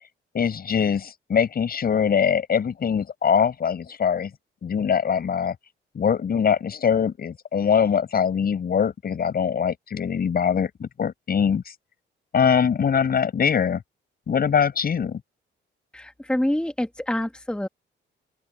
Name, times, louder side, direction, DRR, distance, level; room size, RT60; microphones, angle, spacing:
voice 1, 0.3-4.3 4.6-5.6 5.9-11.7 12.3-13.8 14.3-15.2, left 7 dB, 50° left, 7.3 m, -22 dB
voice 2, 15.9-17.7, left 1 dB, 5° left, 1.7 m, -26 dB
open air
cardioid pair, 90°, 20 cm